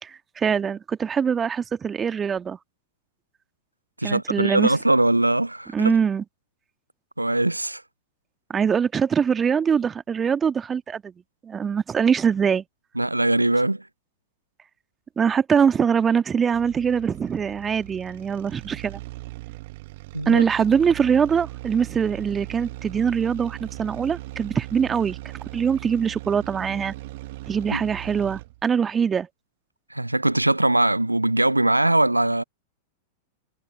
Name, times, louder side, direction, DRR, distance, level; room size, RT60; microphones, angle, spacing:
voice 1, 0.0-2.6 4.0-4.7 5.7-6.2 8.5-11.1 11.4-12.6 15.2-19.0 20.2-25.2 25.5-26.9 27.5-29.3, right 7 dB, 20° right, 1.8 m, -23 dB
voice 2, 4.0-6.0 7.2-7.8 13.0-13.9 20.1-20.4 27.7-27.8 29.9-32.4, right 1 dB, 85° right, 0.6 m, -21 dB
sound 1, 16.5-28.6, right 19 dB, 50° right, 1.9 m, -39 dB
figure-of-eight pair, 95°, 0 cm